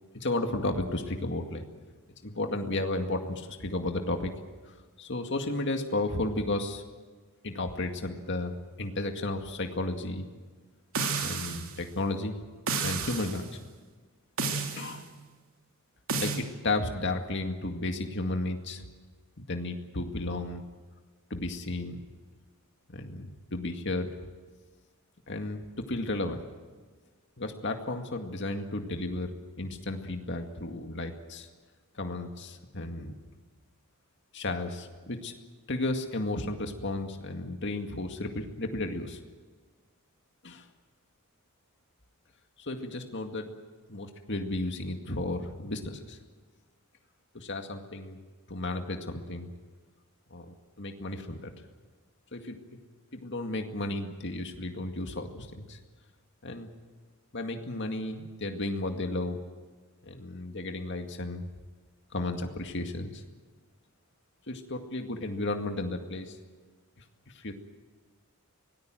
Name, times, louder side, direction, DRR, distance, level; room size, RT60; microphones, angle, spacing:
voice 1, 0.1-1.7 2.2-4.3 4.7-6.8 7.4-10.3 11.2-12.4 12.8-13.5 14.7-15.1 16.2-18.9 19.4-20.6 21.3-22.0 22.9-24.2 25.3-26.5 27.4-31.5 32.0-33.1 34.3-35.3 35.7-39.2 40.4-40.6 42.6-43.6 43.9-46.2 47.3-48.2 48.5-49.5 50.3-51.5 52.3-52.8 53.1-55.8 56.4-56.7 57.3-59.4 60.0-61.5 62.1-63.2 64.5-66.4 67.3-67.5, left 2 dB, 55° left, 4 dB, 2.1 m, -33 dB
sound 1, 10.9-11.7 12.7-13.4 14.4-14.9 16.1-16.4, right 4 dB, 70° right, 3.0 m, -31 dB
24.5 x 19.0 x 7.8 m, 1.4 s
head